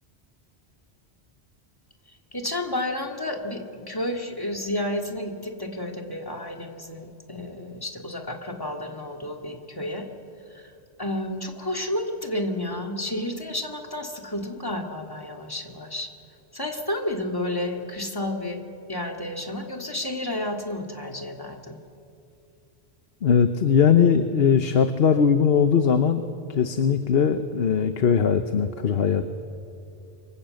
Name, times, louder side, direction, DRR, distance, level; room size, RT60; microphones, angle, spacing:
voice 1, 2.3-10.1 10.5-10.7 11.0-16.1 16.5-18.6 18.9-21.8, left 1 dB, 20° left, 2 dB, 2.2 m, -31 dB
voice 2, 23.2-26.2 26.5-29.2, left 7 dB, 65° left, 9 dB, 1.1 m, -20 dB
26.5 x 25.0 x 7.8 m, 2.7 s
omnidirectional pair, 1.1 m